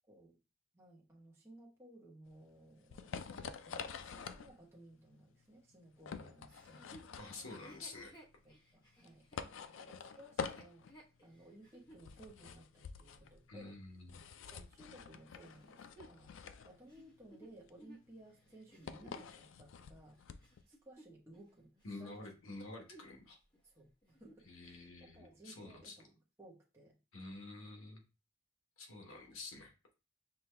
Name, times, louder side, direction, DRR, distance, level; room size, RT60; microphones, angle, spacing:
voice 1, 0.1-0.4 0.7-3.2 3.4-7.0 7.6-7.8 8.4-9.2 9.7-10.9 11.2-13.8 14.5-16.3 16.6-20.2 20.7-22.3 23.6-27.0, right 1 dB, 15° right, -4 dB, 0.9 m, -59 dB
sound 1, 2.3-20.6, left 6 dB, 65° left, 0.4 m, -48 dB
Chuckle chortle, 6.5-12.1 12.7-12.8 15.4-19.4 20.0-21.5 21.8-22.1 22.5-23.2 23.5-23.6 24.0-24.5 25.1-25.2, right 1 dB, 20° left, 0.9 m, -60 dB
voice 2, 7.2-8.1 13.5-14.1 21.8-23.4 24.5-25.9 27.1-28.0 28.8-29.7, left 2 dB, 85° left, 2 dB, 1.1 m, -49 dB
5.7 x 2.3 x 3.2 m, 0.29 s
head